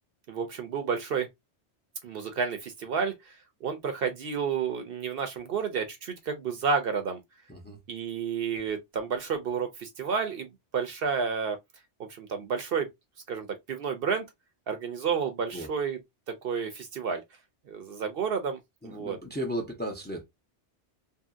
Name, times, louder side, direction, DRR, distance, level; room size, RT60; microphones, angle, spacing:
voice 1, 0.3-1.3 2.0-3.3 3.6-7.2 7.9-11.6 12.0-12.9 13.3-14.2 14.7-16.0 16.3-17.2 17.7-19.2, right 6 dB, 60° right, 0.7 m, -31 dB
voice 2, 18.8-20.2, equal, 10° left, 0.5 m, -35 dB
2.7 x 2.7 x 2.4 m
omnidirectional pair, 1.2 m